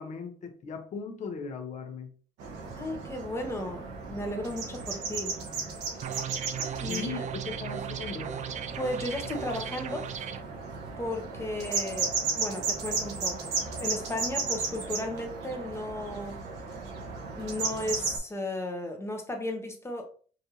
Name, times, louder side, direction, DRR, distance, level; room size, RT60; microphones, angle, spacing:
voice 1, 0.0-2.1 6.9-8.4, left 5 dB, 45° left, 4 dB, 1.0 m, -38 dB
sound 1, 2.4-18.2, right 4 dB, 90° right, 1.2 m, -35 dB
voice 2, 2.8-5.3 6.8-7.2 8.7-10.1 11.0-13.5 13.8-16.4 17.3-20.0, left 1 dB, 15° left, 3 dB, 1.0 m, -35 dB
sound 2, 6.0-10.4, right 9 dB, 45° right, 0.4 m, -37 dB
5.2 x 2.7 x 2.9 m, 0.42 s
cardioid pair, 110°, 17 cm